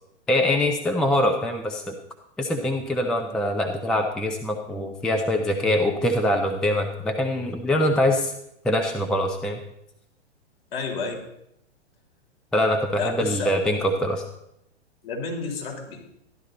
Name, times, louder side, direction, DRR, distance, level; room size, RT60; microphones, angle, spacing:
voice 1, 0.3-1.9 2.4-8.3 8.6-9.6 12.5-14.2, left 1 dB, ahead, 4 dB, 0.4 m, -23 dB
voice 2, 10.7-11.1 13.0-13.5 15.0-16.0, left 4 dB, 55° left, -1 dB, 3.9 m, -30 dB
13.0 x 11.0 x 3.9 m, 0.80 s
figure-of-eight pair, 110°, 35 cm